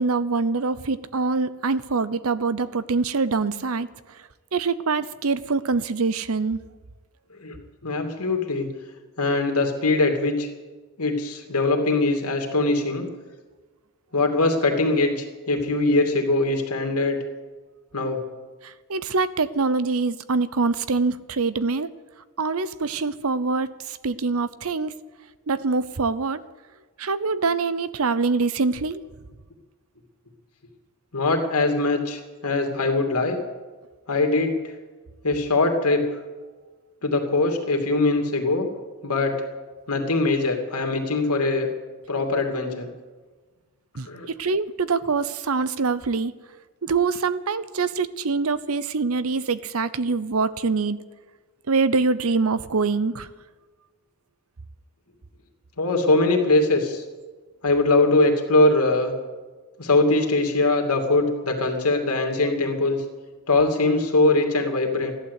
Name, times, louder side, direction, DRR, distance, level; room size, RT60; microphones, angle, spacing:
voice 1, 0.0-4.2 4.5-6.6 18.6-21.9 22.4-24.9 25.5-26.4 27.0-29.0 43.9-46.3 46.8-51.0 51.7-53.3, right 4 dB, 70° right, 16 dB, 0.8 m, -24 dB
voice 2, 7.8-8.7 9.2-10.5 11.0-13.1 14.1-17.2 17.9-18.2 31.1-33.4 34.1-34.7 35.2-36.0 37.0-38.7 39.0-39.4 39.9-41.7 42.1-42.9 44.0-44.3 55.8-57.0 57.6-59.1 59.8-63.0 63.5-65.1, left 2 dB, 90° left, 3 dB, 2.7 m, -22 dB
15.0 x 11.5 x 8.3 m, 1.3 s
head